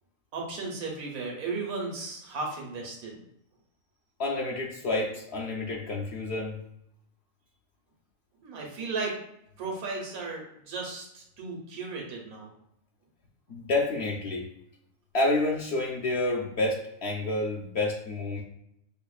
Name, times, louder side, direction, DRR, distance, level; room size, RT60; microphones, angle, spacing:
voice 1, 0.3-3.2 8.4-9.1 9.6-12.5, right 3 dB, 90° right, -1 dB, 1.3 m, -35 dB
voice 2, 4.2-6.6 13.5-14.5 15.1-18.4, left 2 dB, 65° left, -1 dB, 0.7 m, -29 dB
5.4 x 2.1 x 2.3 m, 0.77 s
omnidirectional pair, 1.5 m